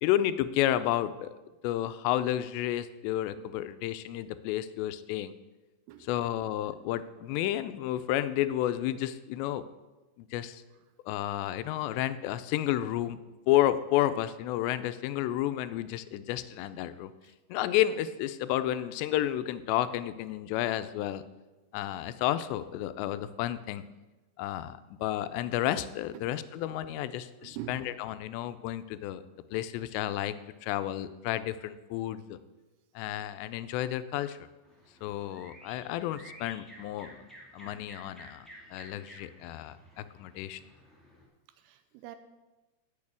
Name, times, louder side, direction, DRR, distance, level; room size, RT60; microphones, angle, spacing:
voice 1, 0.0-1.3 1.6-5.3 6.0-9.6 10.2-10.6 11.1-13.2 13.5-17.1 17.5-21.2 21.7-23.8 24.4-29.2 29.5-30.3 30.6-32.4 33.0-34.5 35.0-37.2 37.5-38.5 38.7-39.8 40.2-40.6, left 13 dB, 85° left, 13 dB, 2.7 m, -31 dB
voice 2, 27.4-27.8 41.6-42.2, right 13 dB, 85° right, 10 dB, 2.6 m, -43 dB
sound 1, 34.6-41.2, equal, ahead, 0.5 m, -53 dB
8.7 x 6.4 x 8.3 m, 1.1 s
omnidirectional pair, 5.0 m